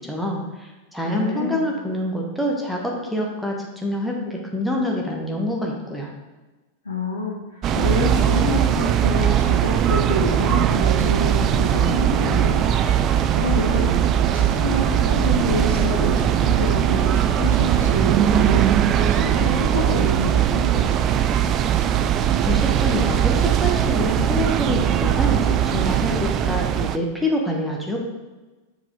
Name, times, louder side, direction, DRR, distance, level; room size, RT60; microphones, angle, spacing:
voice 1, 0.0-6.1 22.4-25.4 25.6-28.1, left 1 dB, ahead, -2 dB, 1.2 m, -26 dB
voice 2, 1.0-1.6 6.8-12.6 12.9-13.0 13.3-14.0 14.3-18.7 19.1-20.9, left 2 dB, 75° left, -7 dB, 1.3 m, -27 dB
sound 1, 7.6-27.0, right 10 dB, 30° right, 0.3 m, -20 dB
7.1 x 4.8 x 3.8 m, 1.2 s
figure-of-eight pair, 90°, 0 cm